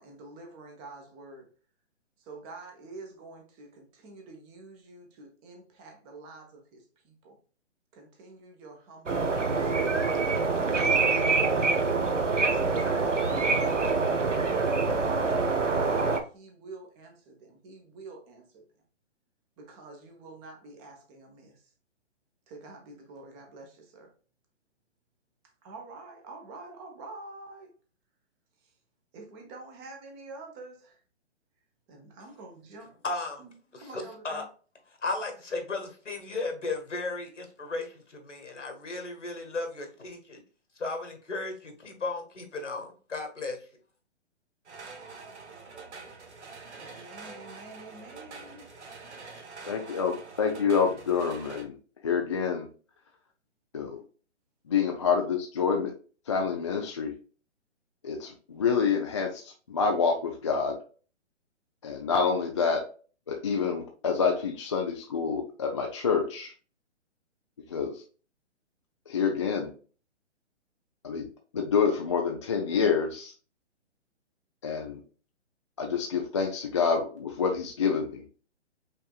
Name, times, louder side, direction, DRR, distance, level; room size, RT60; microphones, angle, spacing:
voice 1, 0.0-1.5 2.2-7.4 7.9-9.3 9.6-10.2 12.6-14.1 14.5-18.6 19.6-21.6 22.5-24.1 25.6-27.7 29.1-31.0 31.9-32.9 33.4-34.5 46.8-48.7, right 3 dB, 20° right, 2 dB, 1.1 m, -47 dB
sound 1, 9.1-16.2, right 4 dB, 85° right, 1.0 m, -25 dB
voice 2, 33.0-33.5 33.7-34.5 35.0-40.4 40.8-43.7, left 3 dB, 80° left, 4 dB, 1.7 m, -35 dB
sound 2, 44.7-51.6, right 4 dB, 70° right, 1.4 m, -46 dB
voice 3, 49.6-51.7 52.0-52.7 53.7-54.0 54.7-55.9 56.3-57.1 58.0-60.8 61.8-62.8 63.3-66.5 67.7-68.0 69.1-69.7 71.0-73.3 74.6-75.0 75.8-78.2, left 6 dB, 25° left, 2 dB, 0.4 m, -27 dB
5.6 x 3.5 x 2.4 m, 0.38 s
figure-of-eight pair, 130°, 36 cm